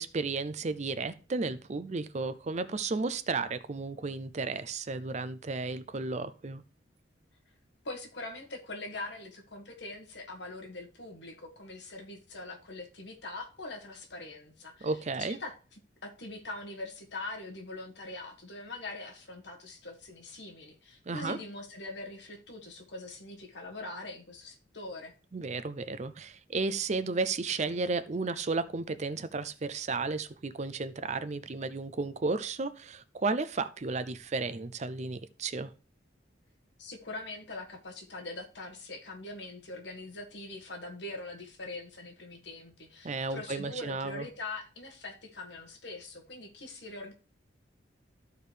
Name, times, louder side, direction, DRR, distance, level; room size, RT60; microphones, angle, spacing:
voice 1, 0.0-6.6 14.8-15.4 21.1-21.4 25.3-35.7 43.0-44.2, right 3 dB, 35° right, 13 dB, 0.5 m, -33 dB
voice 2, 7.8-14.9 15.4-15.6 16.0-25.1 36.8-47.1, left 2 dB, 60° left, 2 dB, 1.7 m, -42 dB
13.5 x 4.7 x 3.3 m, 0.34 s
head